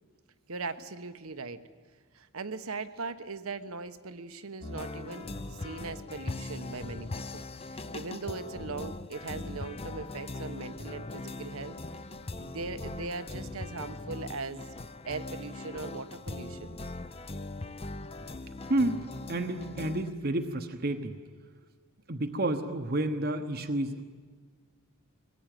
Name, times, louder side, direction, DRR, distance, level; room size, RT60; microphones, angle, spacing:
voice 1, 0.5-1.6 2.1-11.8 12.3-14.7 15.1-16.8, right 3 dB, 75° right, 11 dB, 1.2 m, -39 dB
sound 1, 4.6-20.1, left 2 dB, 25° left, 0.7 m, -40 dB
voice 2, 18.7-21.2 22.1-24.0, right 1 dB, 45° right, 6 dB, 1.1 m, -30 dB
24.0 x 19.5 x 9.2 m, 1.5 s
head